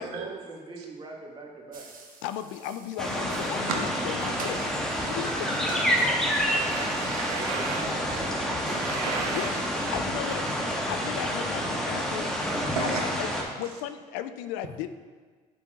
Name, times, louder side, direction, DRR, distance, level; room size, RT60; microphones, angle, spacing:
voice 1, 0.0-1.9 7.3-8.5, right 3 dB, 25° right, 0 dB, 1.6 m, -40 dB
sound 1, 1.7-7.4, right 3 dB, 45° right, 1.2 m, -47 dB
voice 2, 2.2-4.7 5.1-5.9 9.3-9.5 9.9-10.4 10.9-12.3 12.8-13.3 13.6-14.9, left 11 dB, 70° left, 11 dB, 0.4 m, -35 dB
sound 2, 3.0-13.4, equal, 5° left, 1.4 m, -28 dB
voice 3, 4.9-5.2 5.5-5.6 6.0-8.2 8.7-9.6 12.0-12.1 12.7-13.1, right 5 dB, 80° right, 1 dB, 0.9 m, -35 dB
7.5 x 6.8 x 2.8 m, 1.5 s
hypercardioid pair, 60°, 20 cm